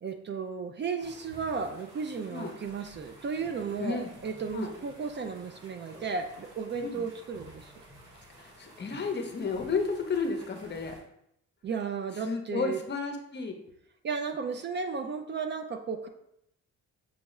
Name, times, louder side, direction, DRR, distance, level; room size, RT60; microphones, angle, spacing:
voice 1, 0.0-7.7 11.6-12.8 14.0-16.1, right 5 dB, 40° right, 6 dB, 0.4 m, -34 dB
sound 1, 1.0-11.0, equal, 85° right, 1.6 m, -52 dB
voice 2, 3.8-4.1 4.5-4.7 6.8-7.0 8.4-11.0 12.2-13.5, left 4 dB, 35° left, 4 dB, 0.7 m, -32 dB
6.3 x 2.3 x 3.0 m, 0.77 s
cardioid pair, 90°, 30 cm